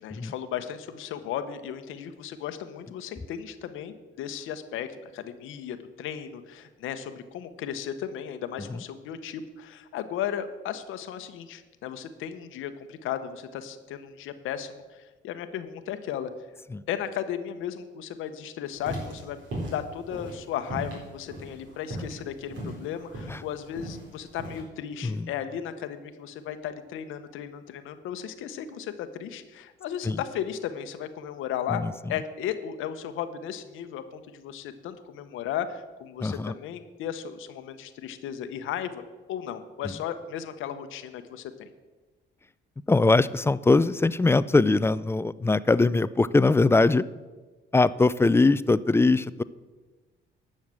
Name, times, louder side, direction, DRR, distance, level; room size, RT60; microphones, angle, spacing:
voice 1, 0.0-4.9 5.1-16.3 16.9-19.4 19.7-31.8 32.1-41.7, left 9 dB, 90° left, 9 dB, 0.9 m, -35 dB
sound 1, 18.7-24.6, right 1 dB, 70° right, 4.5 m, -37 dB
voice 2, 36.2-36.5 42.9-47.0 47.7-49.4, left 3 dB, 10° left, 17 dB, 0.3 m, -22 dB
11.0 x 6.5 x 7.5 m, 1.3 s
cardioid pair, 90°, 20 cm